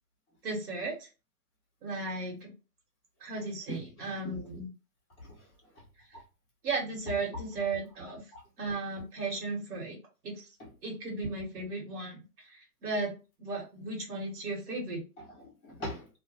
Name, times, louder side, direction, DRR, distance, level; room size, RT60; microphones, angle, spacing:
voice 1, 0.4-1.1 1.8-2.5 3.2-4.7 6.6-8.2 8.6-10.0 10.2-10.5 10.8-15.0, right 3 dB, 70° right, 1.3 m, -35 dB
voice 2, 3.7-4.4 5.2-5.8 8.3-8.4 10.6-10.7 15.2-16.1, equal, 10° left, 0.3 m, -42 dB
2.2 x 2.1 x 2.8 m
hypercardioid pair, 110°, 49 cm